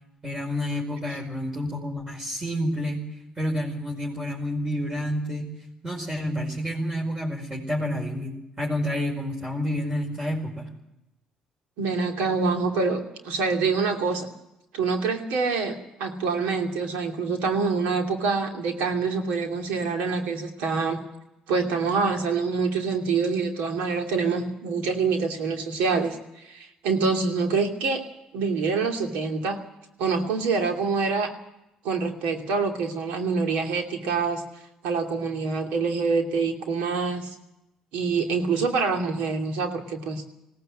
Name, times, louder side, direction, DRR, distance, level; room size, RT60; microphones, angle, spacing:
voice 1, 0.2-3.1 3.4-5.5 5.8-10.7, equal, 25° right, -3 dB, 5.1 m, -29 dB
voice 2, 11.8-14.3 14.7-21.0 21.5-26.2 26.4-28.0 28.3-29.6 30.0-31.3 31.8-34.4 34.8-37.3 37.9-40.2, right 4 dB, 85° right, 3 dB, 2.8 m, -26 dB
19.5 x 17.0 x 7.8 m, 0.90 s
supercardioid pair, 70°, 3 cm